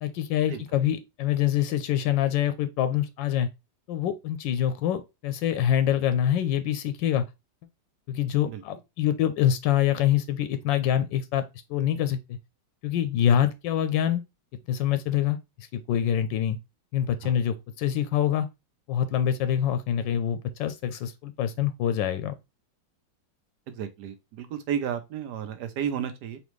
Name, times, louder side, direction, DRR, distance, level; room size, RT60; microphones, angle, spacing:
voice 1, 0.0-3.5 3.9-7.2 8.1-11.4 11.7-12.4 12.8-14.2 14.7-15.4 15.7-16.6 16.9-18.5 18.9-22.3, left 10 dB, 90° left, 1.3 m, -25 dB
voice 2, 23.7-26.4, right 8 dB, 70° right, 1.2 m, -32 dB
4.1 x 3.1 x 3.1 m
omnidirectional pair, 1.9 m